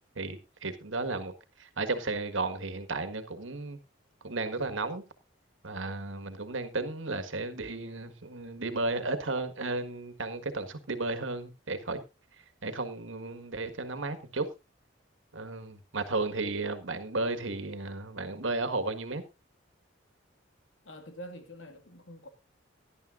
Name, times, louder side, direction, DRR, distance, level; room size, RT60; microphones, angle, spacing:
voice 1, 0.1-1.3 1.6-3.8 4.2-5.0 5.6-12.0 12.6-14.5 15.3-19.2, right 3 dB, 85° right, 1.7 m, -34 dB
voice 2, 20.8-22.3, equal, 80° left, 2.1 m, -46 dB
17.5 x 11.0 x 2.6 m
head